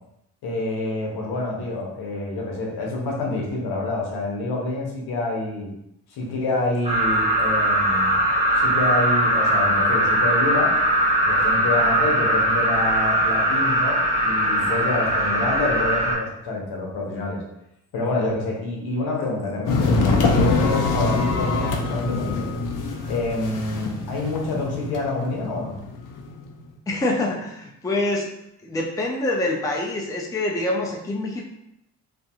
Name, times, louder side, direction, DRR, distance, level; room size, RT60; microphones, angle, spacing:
voice 1, 0.4-5.7 6.1-8.2 8.5-10.8 11.2-17.4 17.9-22.5 23.1-25.8, left 2 dB, 70° left, -1 dB, 0.9 m, -27 dB
sound 1, 6.8-16.1, right 1 dB, 15° right, 1.0 m, -20 dB
sound 2, 19.7-26.5, left 3 dB, 50° left, 0.6 m, -24 dB
voice 2, 26.9-28.3 28.6-31.4, left 2 dB, 10° left, 0 dB, 0.5 m, -25 dB
2.6 x 2.5 x 2.4 m, 0.82 s
supercardioid pair, 55°, 40 cm